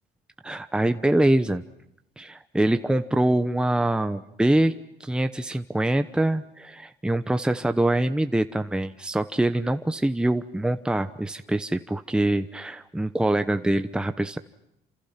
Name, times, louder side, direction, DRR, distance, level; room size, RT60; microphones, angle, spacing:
voice 1, 0.4-1.6 2.2-4.7 5.0-14.4, right 1 dB, 5° right, 9 dB, 0.9 m, -24 dB
29.0 x 27.5 x 5.9 m, 0.82 s
cardioid pair, 110°, 17 cm